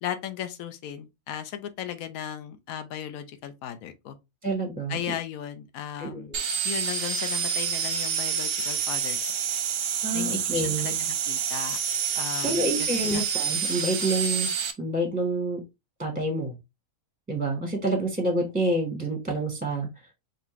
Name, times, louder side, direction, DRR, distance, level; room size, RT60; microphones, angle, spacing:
voice 1, 0.0-4.2 4.9-6.3 6.6-9.2 10.1-11.8 12.2-13.2, left 10 dB, 75° left, 1.1 m, -36 dB
voice 2, 4.4-5.0 6.0-6.4 10.0-11.0 12.4-14.5 14.8-15.6 16.0-16.5 17.3-19.9, right 1 dB, 5° right, 0.9 m, -28 dB
sound 1, 6.3-14.7, right 7 dB, 50° right, 0.8 m, -28 dB
5.6 x 2.6 x 3.0 m
omnidirectional pair, 1.6 m